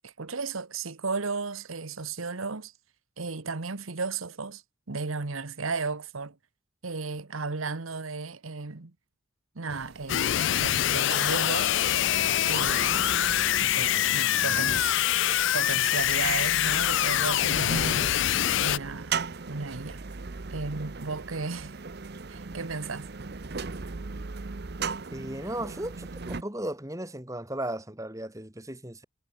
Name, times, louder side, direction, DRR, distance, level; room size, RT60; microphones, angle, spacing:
voice 1, 0.0-2.7 3.2-4.6 4.9-6.4 6.8-8.9 9.5-11.8 12.5-13.1 13.6-15.0 15.5-18.2 18.6-19.2 19.5-20.0 20.5-21.8 22.3-23.1, right 4 dB, 80° right, 1.3 m, -34 dB
sound 1, 9.7-26.4, right 4 dB, 50° right, 0.8 m, -38 dB
sound 2, 10.1-18.8, left 12 dB, 60° left, 0.4 m, -25 dB
voice 2, 25.1-29.0, right 1 dB, 15° right, 2.5 m, -36 dB
head